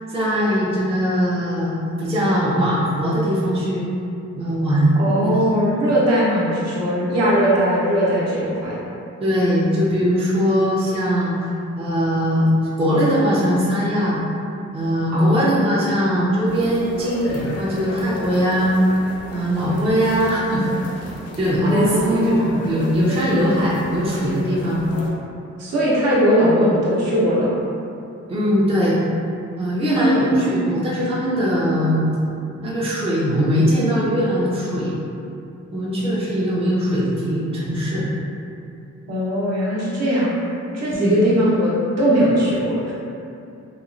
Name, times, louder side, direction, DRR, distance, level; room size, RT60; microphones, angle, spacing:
voice 1, 0.1-3.9 4.4-5.0 5.2-5.4 9.2-11.5 11.8-12.5 12.8-14.2 14.7-18.8 19.3-20.7 21.4-24.9 28.3-29.0 29.6-32.2 32.6-35.0 35.7-38.1 40.9-41.2, equal, 20° right, -8 dB, 0.5 m, -20 dB
voice 2, 5.0-8.8 15.1-15.6 21.6-22.7 25.6-27.5 29.9-30.5 39.1-40.3 40.7-42.9, equal, 60° right, -7 dB, 0.8 m, -19 dB
sound 1, 16.5-25.1, left 1 dB, 60° left, 0.5 m, -35 dB
2.9 x 2.2 x 2.5 m, 2.6 s
wide cardioid pair, 135°, 29 cm